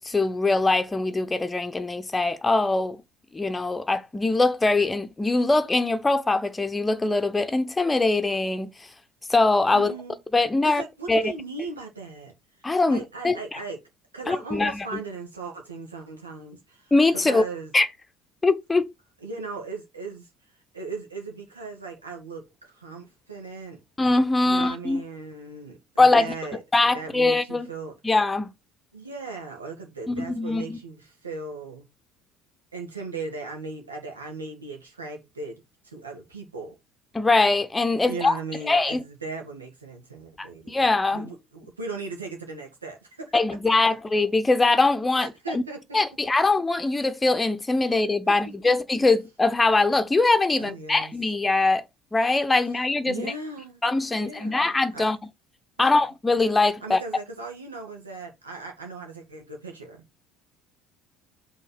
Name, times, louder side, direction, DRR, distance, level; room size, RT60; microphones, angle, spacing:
voice 1, 0.0-3.0 3.3-8.7 9.3-9.9 10.3-10.8 11.1-11.2 12.6-13.4 14.3-14.8 16.9-17.4 17.7-17.9 18.4-18.9 24.0-25.0 26.0-26.3 26.7-27.7 28.0-28.5 30.1-30.8 37.1-38.3 38.7-39.0 40.4-41.3 43.3-45.6 45.9-51.8 52.1-53.3 53.8-55.2 55.8-57.0, left 3 dB, 15° left, 0.8 m, -22 dB
voice 2, 9.7-10.2 10.6-12.3 12.6-13.8 14.1-17.7 19.2-20.3 20.7-23.8 24.4-26.6 26.9-27.9 28.9-31.9 32.7-36.8 38.0-40.8 41.1-43.4 45.1-46.0 47.8-48.8 50.6-51.1 52.7-52.8 53.1-53.8 54.1-55.1 55.8-56.0 56.8-60.1, right 3 dB, 85° right, 2.1 m, -38 dB
5.6 x 4.0 x 5.6 m
figure-of-eight pair, 60°, 0 cm